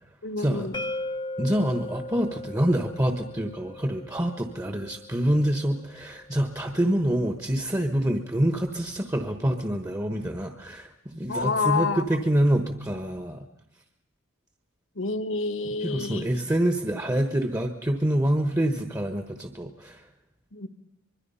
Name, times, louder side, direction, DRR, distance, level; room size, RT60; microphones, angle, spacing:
voice 1, 0.2-0.8 11.3-12.2 14.9-16.3 20.5-20.7, left 4 dB, 65° left, 11 dB, 1.5 m, -28 dB
sound 1, 0.7-6.5, left 2 dB, 20° left, 0.7 m, -38 dB
voice 2, 1.4-13.5 15.8-20.0, right 1 dB, 15° right, 6 dB, 1.1 m, -26 dB
25.0 x 22.5 x 5.6 m, 0.82 s
head